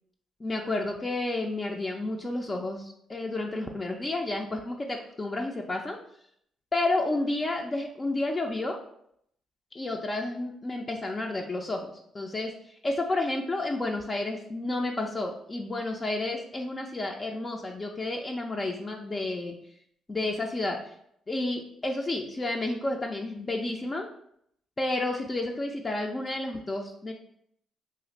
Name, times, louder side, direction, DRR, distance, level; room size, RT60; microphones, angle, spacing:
voice 1, 0.4-6.0 6.7-8.8 9.7-12.5 12.8-19.6 20.1-20.8 21.3-24.1 24.8-27.1, left 2 dB, 25° left, 1 dB, 0.4 m, -31 dB
2.8 x 2.4 x 4.0 m, 0.70 s
cardioid pair, 90°, 0 cm